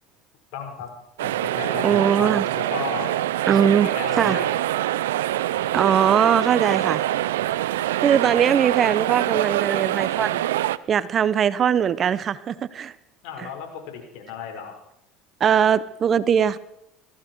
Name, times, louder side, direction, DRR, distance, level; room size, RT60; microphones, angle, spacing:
voice 1, 0.5-0.9 1.2-3.1 3.6-4.5 13.2-14.8, left 6 dB, 70° left, 5.3 m, -34 dB
sound 1, 1.2-10.8, right 14 dB, 85° right, 0.5 m, -25 dB
voice 2, 1.8-2.4 3.5-3.9 4.2-4.4 5.7-7.0 8.0-10.4 10.9-12.9 15.4-16.6, right 8 dB, 40° right, 0.8 m, -20 dB
20.5 x 15.0 x 4.7 m
hypercardioid pair, 90°, 0 cm